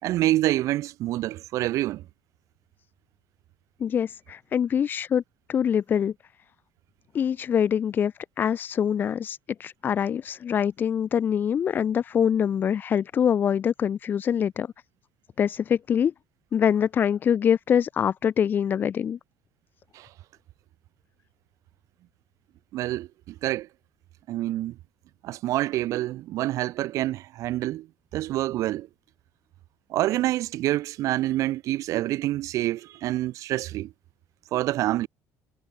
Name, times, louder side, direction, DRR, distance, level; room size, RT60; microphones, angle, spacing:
voice 1, 0.0-2.0 19.9-20.1 22.7-23.1 23.4-23.7 24.3-24.7 25.2-27.9 28.1-28.9 29.9-33.9 34.5-35.1, right 15 dB, 55° right, 4.0 m, -27 dB
voice 2, 3.8-5.2 5.5-6.1 7.1-14.7 15.4-16.1 16.5-19.2, left 8 dB, 30° left, 6.8 m, -24 dB
cardioid pair, 180°, 7 cm